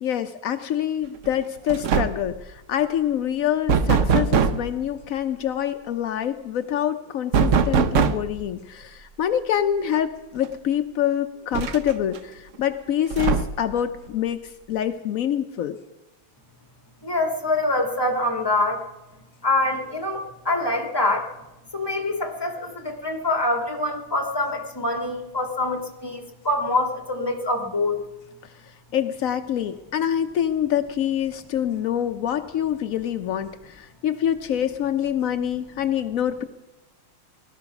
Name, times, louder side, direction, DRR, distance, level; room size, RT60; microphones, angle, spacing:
voice 1, 0.0-15.8 28.9-36.4, left 10 dB, 85° left, 8 dB, 0.7 m, -26 dB
sound 1, 1.2-1.4 1.7-2.3 3.7-4.7 7.3-8.4 9.9-10.0 10.4-10.5 11.5-12.2 13.1-13.7, right 6 dB, 90° right, 0.6 m, -21 dB
voice 2, 17.0-18.8 19.4-21.3 21.7-28.0, left 2 dB, 10° left, 4 dB, 1.8 m, -25 dB
18.0 x 12.5 x 5.9 m, 1.0 s
omnidirectional pair, 2.2 m